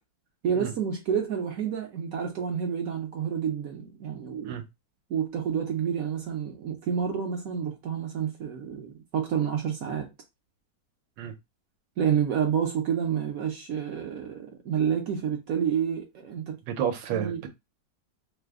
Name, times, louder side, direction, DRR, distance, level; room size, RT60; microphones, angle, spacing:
voice 1, 0.4-4.5 5.1-10.1 12.0-16.6 17.1-17.4, right 8 dB, 65° right, 0.9 m, -29 dB
voice 2, 16.7-17.5, right 9 dB, 85° right, 1.4 m, -30 dB
3.2 x 2.0 x 3.4 m
omnidirectional pair, 1.9 m